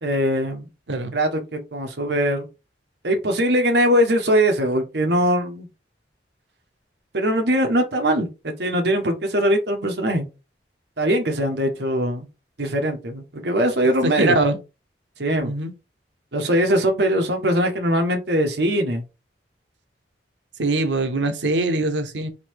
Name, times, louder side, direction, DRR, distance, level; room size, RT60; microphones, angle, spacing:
voice 1, 0.0-0.7 1.1-2.4 3.0-5.7 7.1-10.2 11.0-12.3 12.6-14.4 15.2-15.5 16.3-19.0, equal, 65° right, 1.1 m, -21 dB
voice 2, 14.0-14.6 15.4-15.7 20.6-22.3, right 2 dB, 90° right, 0.8 m, -22 dB
4.1 x 2.8 x 4.6 m
head